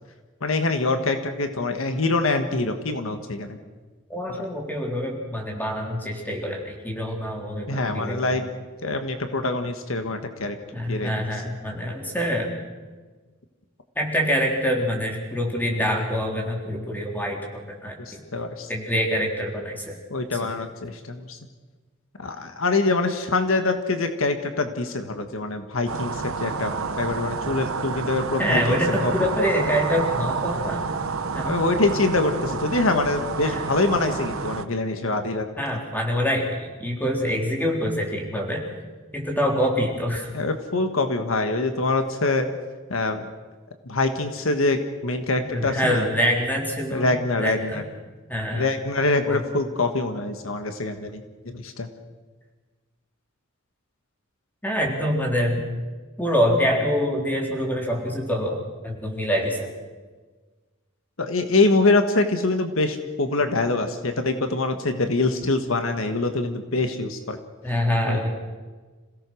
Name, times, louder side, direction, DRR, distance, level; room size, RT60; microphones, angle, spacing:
voice 1, 0.4-3.6 4.3-4.4 7.7-8.4 8.8-10.6 10.9-11.1 18.0-18.7 20.1-21.4 22.2-29.1 31.4-35.5 40.3-42.5 42.9-43.2 43.8-46.1 46.9-47.8 48.5-51.9 61.2-67.4 68.1-68.2, left 2 dB, 75° left, 7 dB, 1.6 m, -24 dB
voice 2, 4.1-8.2 10.7-12.5 14.0-18.2 18.7-19.9 20.3-20.4 28.4-30.8 31.3-31.6 33.4-33.6 35.6-38.6 39.1-40.3 45.5-47.8 48.3-48.7 49.3-49.4 54.6-55.6 56.2-59.7 67.6-68.3, equal, 10° left, 0 dB, 4.0 m, -25 dB
sound 1, 25.9-34.6, right 4 dB, 90° right, 1.0 m, -29 dB
27.5 x 17.0 x 6.4 m, 1.3 s
head